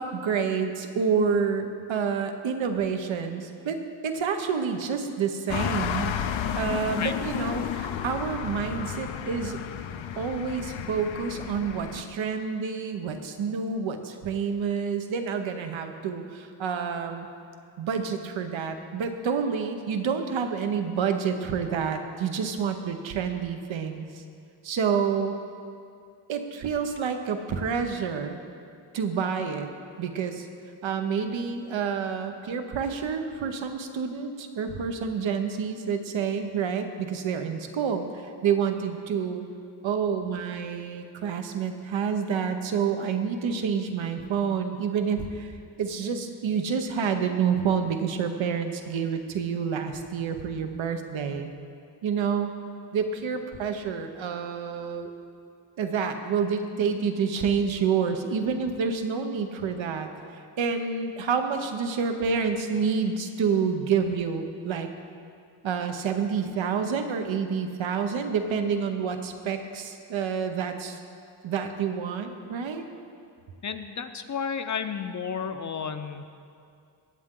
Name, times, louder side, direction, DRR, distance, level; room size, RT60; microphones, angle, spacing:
voice 1, 0.0-3.8 4.0-6.2 6.5-9.6 10.2-17.3 17.8-24.2 24.6-25.4 26.3-28.4 28.9-29.7 30.0-30.5 30.8-39.4 39.8-45.5 45.8-51.5 52.0-52.5 52.9-55.1 55.8-60.1 60.6-64.9 65.6-71.0 71.4-72.8, right 6 dB, 85° right, 6 dB, 1.0 m, -28 dB
sound 1, 5.5-12.0, left 9 dB, 85° left, 0.7 m, -32 dB
voice 2, 73.6-76.3, left 6 dB, 40° left, 9 dB, 0.7 m, -32 dB
19.5 x 7.8 x 3.8 m, 2.3 s
cardioid pair, 95°, 45 cm